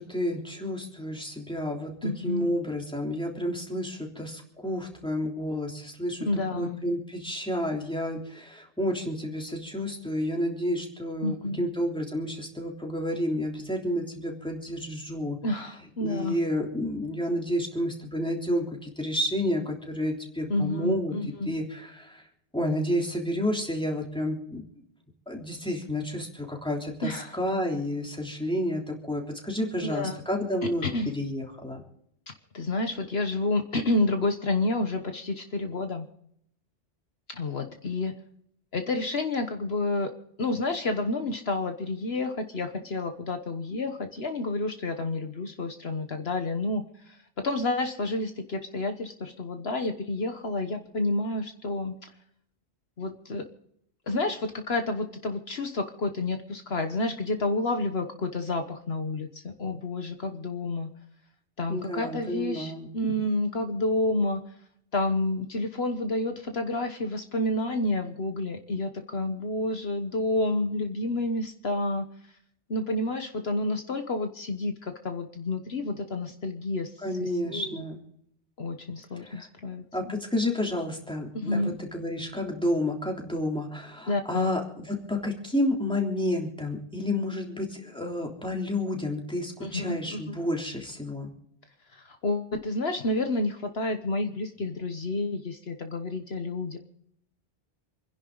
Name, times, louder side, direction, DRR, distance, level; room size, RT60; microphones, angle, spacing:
voice 1, 0.0-6.3 6.5-15.4 16.0-21.1 21.5-22.2 22.5-24.6 25.3-31.8 61.7-62.9 77.0-78.0 79.2-79.5 79.9-91.3, left 1 dB, 5° left, 0 dB, 3.3 m, -30 dB
voice 2, 2.0-2.6 6.3-6.8 11.2-11.7 15.4-16.4 20.5-21.5 27.0-27.4 29.8-30.2 30.8-31.1 32.5-36.1 37.3-38.1 38.7-40.1 40.4-47.2 47.4-52.0 53.0-53.4 54.1-60.9 61.6-64.4 64.9-72.1 72.7-76.9 77.2-77.8 78.6-79.8 81.3-81.7 84.1-84.5 89.6-90.4 91.9-96.8, left 2 dB, 65° left, 6 dB, 1.5 m, -29 dB
28.0 x 11.0 x 4.0 m, 0.71 s
omnidirectional pair, 1.1 m